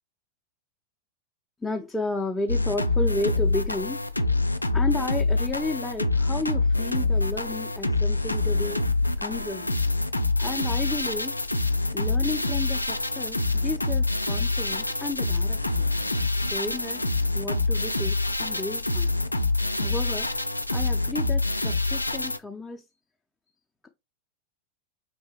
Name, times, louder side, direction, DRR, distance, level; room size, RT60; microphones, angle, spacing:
voice 1, 1.6-4.0 4.7-8.8 9.2-9.7 10.4-11.3 11.9-15.8 16.4-17.0 17.3-19.2 19.8-20.3 20.7-22.8, left 2 dB, 5° left, 0.4 m, -32 dB
sound 1, 2.5-22.4, left 2 dB, 85° left, 0.3 m, -26 dB
5.4 x 2.7 x 3.1 m
figure-of-eight pair, 90°, 0 cm